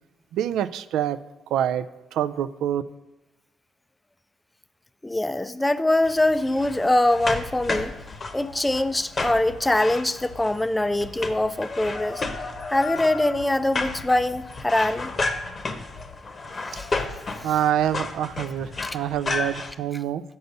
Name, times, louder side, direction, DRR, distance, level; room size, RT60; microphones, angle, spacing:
voice 1, 0.3-1.2 1.5-2.8 17.4-20.2, right 10 dB, 85° right, 15 dB, 0.3 m, -26 dB
voice 2, 5.0-7.9 8.3-12.2 12.7-15.1 16.7-16.9 18.8-18.9, left 1 dB, 10° left, 14 dB, 0.4 m, -23 dB
sound 1, 6.0-19.7, left 3 dB, 35° left, 0.9 m, -32 dB
6.9 x 6.6 x 5.3 m, 0.99 s
cardioid pair, 90°, 0 cm